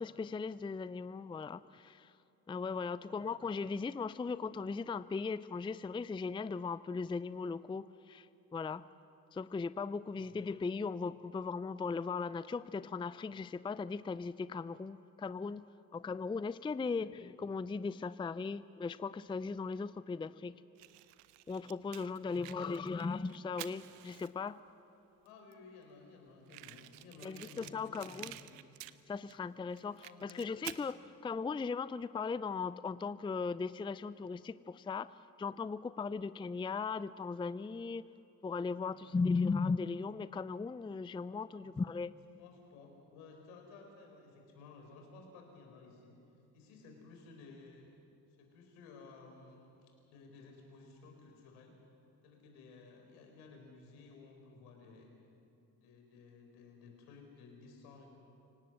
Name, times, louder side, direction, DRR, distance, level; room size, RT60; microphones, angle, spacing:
voice 1, 0.0-2.1 2.5-8.3 8.5-8.9 9.3-15.6 15.9-20.6 21.5-24.6 27.2-28.4 29.1-35.1 35.4-38.1 38.4-42.1, left 4 dB, 10° left, 17 dB, 0.5 m, -38 dB
voice 2, 3.0-3.5 10.1-10.4 16.8-17.0 22.4-23.1 25.2-28.5 30.0-30.5 31.2-31.3 39.0-39.3 41.6-41.8 42.4-46.2 46.5-47.9 48.4-51.8 52.2-55.1 55.8-58.1, left 4 dB, 80° left, 2 dB, 4.4 m, -56 dB
Fire, 20.8-24.6 25.3-25.4 25.5-25.6 25.8-25.9 26.5-29.4 29.7-30.9, right 17 dB, 70° right, 0.8 m, -50 dB
26.0 x 18.0 x 7.8 m, 2.7 s
hypercardioid pair, 50°, 44 cm